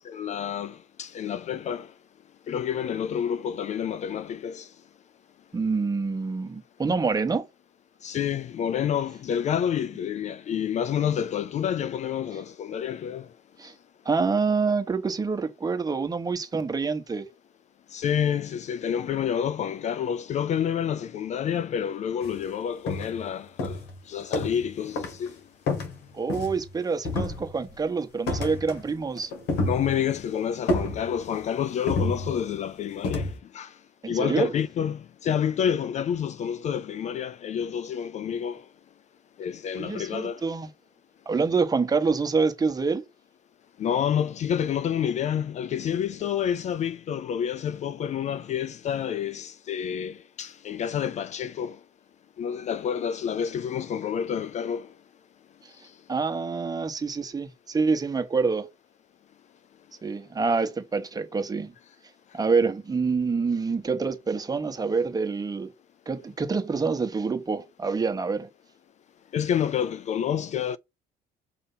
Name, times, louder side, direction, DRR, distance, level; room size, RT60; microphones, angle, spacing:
voice 1, 0.1-1.9 2.5-4.7 8.0-13.3 17.9-23.8 24.1-25.4 29.6-33.7 34.1-38.7 39.4-40.4 43.8-51.8 52.4-54.9 69.3-70.8, left 8 dB, 45° left, 0.4 m, -28 dB
voice 2, 5.5-7.4 13.6-13.7 14.0-17.3 26.1-29.3 34.0-34.5 39.8-40.7 41.3-43.0 55.6-55.7 56.1-58.7 60.0-61.7 62.3-65.7 66.1-68.5, right 4 dB, 20° right, 1.1 m, -26 dB
sound 1, 22.2-22.4 22.9-23.3 23.6-24.7 25.0-25.3 25.7-26.7 27.0-27.8 28.3-28.9 29.2-30.2 30.7-31.4 31.9-32.6 33.0-33.4, left 2 dB, 90° left, 2.0 m, -29 dB
6.7 x 2.8 x 5.5 m
cardioid pair, 110°, 17 cm